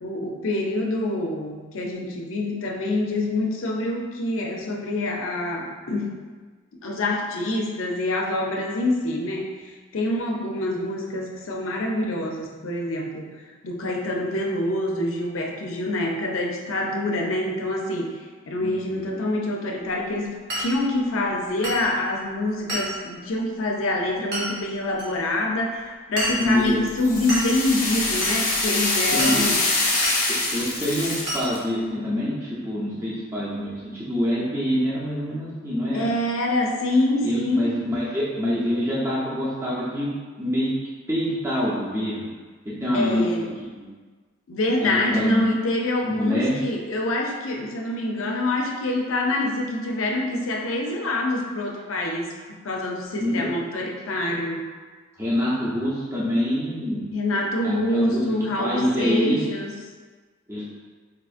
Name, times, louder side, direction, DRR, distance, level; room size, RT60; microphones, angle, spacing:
voice 1, 0.0-6.2 6.8-13.3 13.6-29.6 35.9-37.7 42.9-43.5 44.5-54.6 57.1-59.7, left 1 dB, 90° left, 0 dB, 0.5 m, -26 dB
voice 2, 18.5-19.1 26.4-26.8 29.1-29.5 30.3-36.1 37.2-40.1 40.4-40.8 41.1-42.3 42.6-43.5 43.7-43.9 44.8-45.5 46.0-46.6 53.1-53.5 55.2-57.1 57.6-59.4 60.5-60.7, equal, 15° right, -8 dB, 0.5 m, -26 dB
Glass, 20.5-20.7 21.6-21.9 22.7-22.9 24.3-24.5 25.0-25.1 26.2-26.5 27.3-27.5 28.2-28.4 29.2-29.4 30.0-30.2 31.3-31.5, right 1 dB, 55° right, 1.0 m, -28 dB
sound 1, 26.4-31.6, left 2 dB, 45° left, 0.7 m, -24 dB
4.6 x 2.4 x 2.4 m, 1.4 s
head